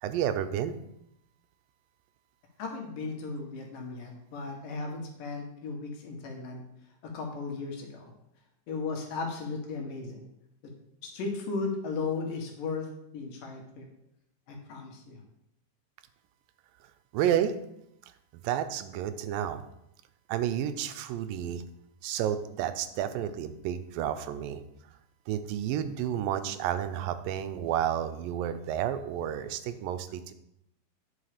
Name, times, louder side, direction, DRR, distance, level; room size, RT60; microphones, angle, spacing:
voice 1, 0.0-0.8 17.1-17.5 18.3-19.6 20.3-21.6 22.0-24.6 25.3-30.3, right 10 dB, 90° right, 10 dB, 2.4 m, -31 dB
voice 2, 2.6-6.6 7.0-8.1 8.7-10.3 10.6-10.7 11.0-12.9 13.1-13.9 14.5-15.2, left 4 dB, 75° left, 1 dB, 3.1 m, -36 dB
10.0 x 5.7 x 5.0 m, 0.80 s
omnidirectional pair, 3.9 m